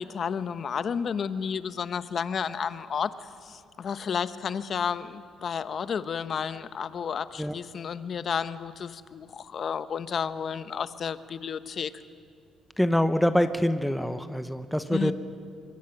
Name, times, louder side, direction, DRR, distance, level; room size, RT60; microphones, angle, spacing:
voice 1, 0.0-3.1 3.4-11.9 14.9-15.1, left 7 dB, 50° left, 13 dB, 0.9 m, -31 dB
voice 2, 12.8-15.1, equal, ahead, 9 dB, 1.0 m, -25 dB
26.0 x 22.0 x 5.9 m, 2.2 s
cardioid pair, 90°, 0 cm